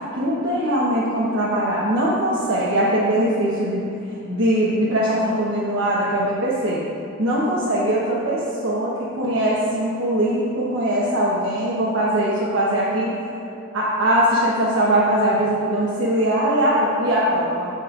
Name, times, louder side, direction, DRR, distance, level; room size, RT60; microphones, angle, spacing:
voice 1, 0.2-6.8 7.2-13.2 13.7-17.7, right 1 dB, 70° right, -8 dB, 1.3 m, -21 dB
14.5 x 5.3 x 2.6 m, 2.7 s
head